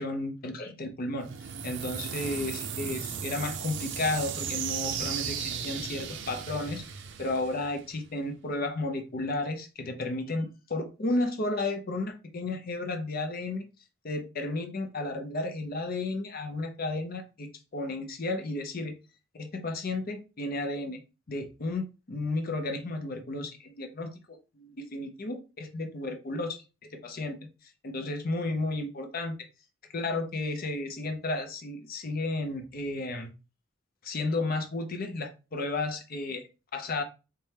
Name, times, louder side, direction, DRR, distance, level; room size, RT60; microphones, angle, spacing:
voice 1, 0.0-6.8 7.2-13.7 14.0-19.0 19.3-21.0 21.3-27.4 27.8-29.4 29.9-33.3 34.0-37.0, left 2 dB, 45° left, 0.6 m, -33 dB
sound 1, 1.2-8.1, right 7 dB, 60° right, 0.4 m, -36 dB
4.2 x 2.2 x 3.3 m
head